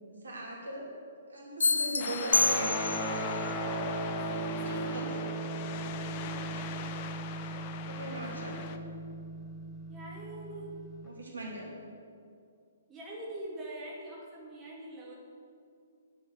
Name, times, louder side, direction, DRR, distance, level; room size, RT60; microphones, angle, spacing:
voice 1, 0.2-0.9 1.3-2.7 4.7-5.1 6.4-6.7 7.9-8.7 11.0-11.7, right 1 dB, 75° right, -2 dB, 3.0 m, -39 dB
sound 1, 1.6-3.2, left 3 dB, 70° left, 0.4 m, -28 dB
sound 2, 2.0-8.8, left 8 dB, 35° left, 0.7 m, -42 dB
Guitar, 2.3-11.1, right 2 dB, 10° left, 1.7 m, -37 dB
voice 2, 4.1-5.3 7.9-8.9 9.9-10.7 12.9-15.1, right 1 dB, 15° right, -5 dB, 2.9 m, -45 dB
9.2 x 8.2 x 8.2 m, 2.3 s
figure-of-eight pair, 120°, 0 cm